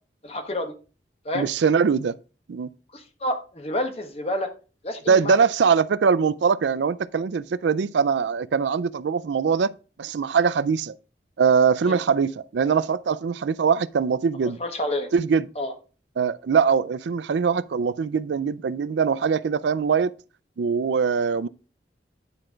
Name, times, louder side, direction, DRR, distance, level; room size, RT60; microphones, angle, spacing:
voice 1, 0.2-0.7 1.2-1.5 2.9-4.5 4.8-5.4 11.8-12.0 14.6-15.1 15.6-15.7, left 1 dB, 35° left, 1.2 m, -29 dB
voice 2, 1.3-2.1 2.5-2.7 5.1-9.7 10.0-11.0 11.4-14.6 15.1-15.4 16.2-20.1 20.6-21.5, right 6 dB, 85° right, 0.4 m, -22 dB
9.7 x 4.4 x 5.0 m
head